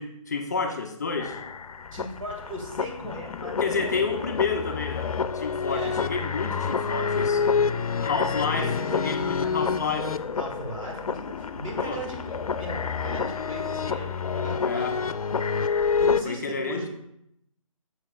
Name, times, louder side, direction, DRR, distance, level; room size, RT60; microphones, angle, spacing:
voice 1, 0.0-1.4 3.4-7.4 8.0-10.1 11.7-12.0 14.6-14.9 16.2-16.8, left 4 dB, 30° left, 3 dB, 0.5 m, -30 dB
sound 1, 1.2-16.2, left 5 dB, 90° left, 0.4 m, -28 dB
voice 2, 1.9-4.0 5.7-5.9 8.5-9.6 10.3-12.2 12.5-14.9 16.0-16.9, equal, 70° right, 1 dB, 2.0 m, -37 dB
7.0 x 6.7 x 2.4 m, 0.79 s
hypercardioid pair, 165°, 18 cm